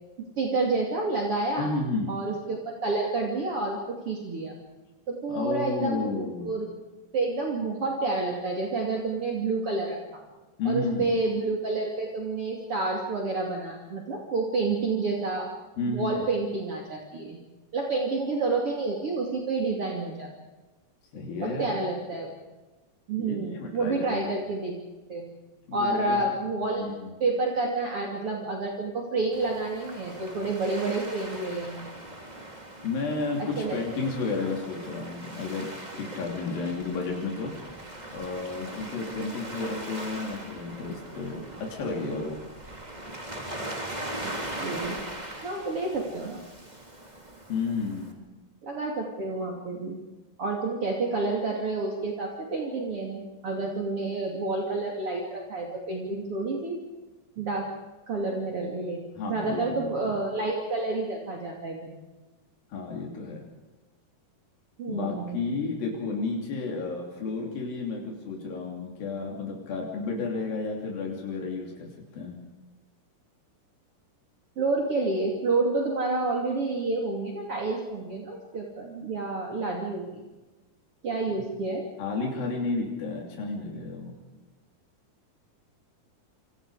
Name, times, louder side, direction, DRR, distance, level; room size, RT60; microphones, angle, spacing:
voice 1, 0.4-1.7 2.1-4.5 5.1-6.7 7.1-10.0 10.6-15.5 15.9-17.4 17.7-20.3 21.4-22.3 23.1-24.7 25.1-25.3 25.7-31.9 33.4-34.0 44.2-44.3 44.6-45.0 45.4-46.4 48.6-50.0 50.4-56.8 57.4-57.7 58.1-62.1 64.8-65.4 74.6-80.3 81.0-81.9, right 3 dB, 40° right, -1 dB, 3.4 m, -29 dB
voice 2, 1.6-2.1 5.3-6.5 10.6-11.2 15.8-16.3 21.1-21.8 23.2-24.3 25.7-26.2 26.8-27.1 32.8-35.7 35.9-37.5 38.1-42.4 47.5-48.2 59.2-60.2 62.7-63.4 64.9-72.4 82.0-84.2, left 3 dB, 85° left, 0 dB, 4.9 m, -32 dB
Waves surf, 29.3-48.1, right 1 dB, 10° right, 2.8 m, -40 dB
27.5 x 27.0 x 5.0 m, 1.2 s
omnidirectional pair, 4.0 m